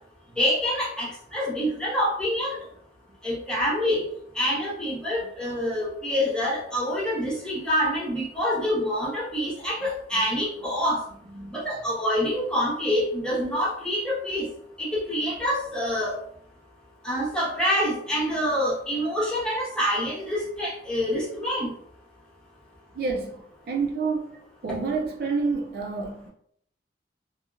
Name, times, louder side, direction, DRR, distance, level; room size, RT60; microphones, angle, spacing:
voice 1, 0.4-2.6 3.2-4.0 4.3-11.0 11.5-14.5 14.8-16.1 17.0-21.7, equal, 5° left, 1.0 m, -26 dB
voice 2, 22.9-26.3, right 4 dB, 55° right, 0.3 m, -29 dB
2.8 x 2.7 x 2.3 m
head